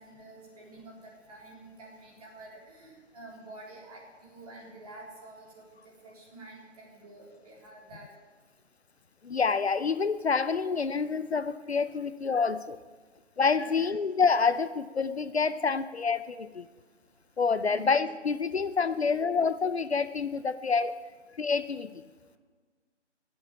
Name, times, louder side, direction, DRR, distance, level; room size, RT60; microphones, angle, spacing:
voice 1, 0.0-8.1 13.6-14.0 17.7-18.0 18.5-18.6, right 2 dB, 30° right, -3 dB, 3.8 m, -49 dB
voice 2, 9.2-12.8 13.4-16.7 17.4-20.9 21.4-21.9, left 5 dB, 60° left, 14 dB, 0.7 m, -27 dB
15.0 x 8.0 x 9.0 m, 1.4 s
figure-of-eight pair, 160°, 36 cm